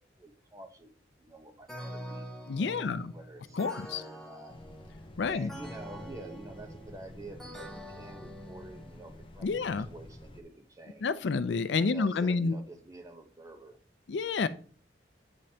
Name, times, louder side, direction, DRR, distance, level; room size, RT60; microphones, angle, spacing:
voice 1, 0.2-0.9 1.2-4.5 5.2-11.1 11.8-13.8, right 2 dB, 20° right, 6 dB, 0.8 m, -48 dB
sound 1, 1.7-9.3, equal, ahead, 1.1 m, -46 dB
voice 2, 2.5-3.1 3.5-4.0 5.2-5.5 9.4-9.9 11.0-12.6 14.1-14.5, left 4 dB, 75° left, 14 dB, 0.4 m, -29 dB
sound 2, 4.5-10.4, left 1 dB, 30° left, 0.6 m, -50 dB
8.9 x 5.1 x 2.8 m, 0.42 s
head